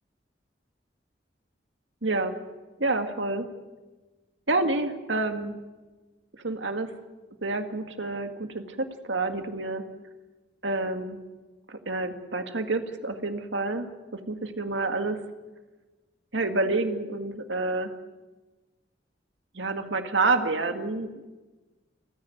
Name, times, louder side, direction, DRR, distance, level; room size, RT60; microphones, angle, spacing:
voice 1, 2.0-2.4 2.8-3.5 4.5-5.5 6.4-6.9 7.4-9.8 10.6-11.2 11.7-13.9 14.1-15.2 16.3-17.9 19.5-21.1, right 3 dB, 80° right, 7 dB, 2.0 m, -28 dB
28.5 x 10.5 x 9.2 m, 1.2 s
head